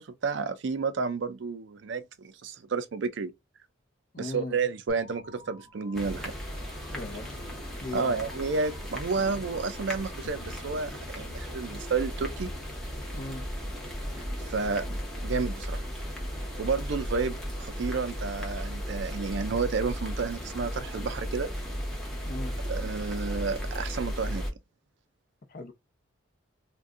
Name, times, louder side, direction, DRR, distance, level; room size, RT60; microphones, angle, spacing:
voice 1, 0.0-3.3 4.2-6.3 7.9-12.5 14.5-15.8 16.6-21.5 22.7-24.4, right 4 dB, 65° right, 0.4 m, -31 dB
voice 2, 4.1-4.6 6.9-7.4 7.8-8.2 13.1-13.5 22.2-22.5 25.5-25.7, left 2 dB, 40° left, 0.6 m, -38 dB
sound 1, 4.9-11.3, left 2 dB, 90° left, 0.7 m, -51 dB
sound 2, 5.9-24.5, equal, ahead, 0.7 m, -35 dB
2.5 x 2.2 x 3.6 m
head